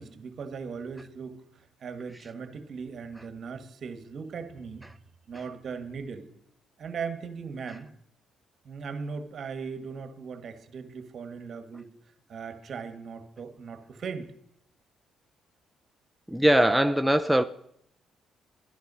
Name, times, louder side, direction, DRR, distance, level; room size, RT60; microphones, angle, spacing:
voice 1, 0.0-4.9 5.3-6.3 6.8-7.9 8.6-11.9 12.3-14.3, right 5 dB, 55° right, 1.5 m, -38 dB
voice 2, 16.3-17.4, equal, 5° right, 0.5 m, -21 dB
11.5 x 10.5 x 5.5 m
cardioid pair, 90°, 0 cm